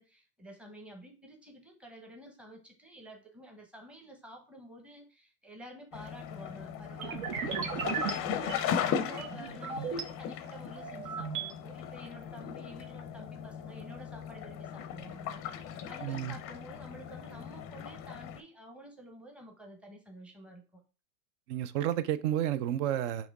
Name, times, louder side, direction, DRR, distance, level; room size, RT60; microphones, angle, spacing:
voice 1, 0.0-20.8, equal, 5° right, 0.8 m, -50 dB
sound 1, 5.9-18.4, left 8 dB, 30° left, 0.5 m, -38 dB
sound 2, 7.0-10.0 10.5-11.5, right 6 dB, 65° right, 1.1 m, -37 dB
voice 2, 16.0-16.4 21.5-23.3, right 11 dB, 50° right, 0.5 m, -31 dB
4.9 x 3.0 x 3.4 m
hypercardioid pair, 115°, 46 cm